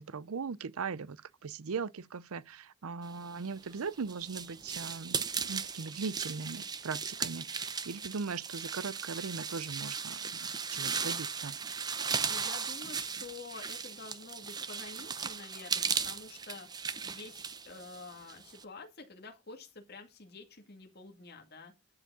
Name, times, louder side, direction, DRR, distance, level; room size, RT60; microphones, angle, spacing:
voice 1, 0.0-11.6, right 5 dB, 85° right, 0.6 m, -39 dB
sound 1, 3.5-18.6, right 6 dB, 20° right, 0.6 m, -37 dB
voice 2, 12.3-16.7 17.0-21.7, left 4 dB, 50° left, 2.3 m, -48 dB
11.5 x 5.2 x 6.8 m
head